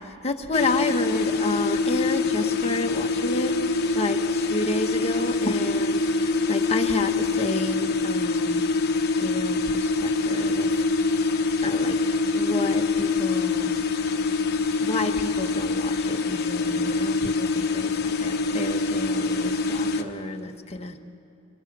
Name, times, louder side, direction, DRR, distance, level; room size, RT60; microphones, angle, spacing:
voice 1, 0.2-3.5 3.9-8.7 9.2-11.2 11.6-13.7 14.8-21.0, left 2 dB, 30° left, 5 dB, 1.3 m, -31 dB
sound 1, 0.5-20.0, left 3 dB, 55° left, 1.0 m, -25 dB
26.5 x 23.5 x 6.1 m, 2.6 s
head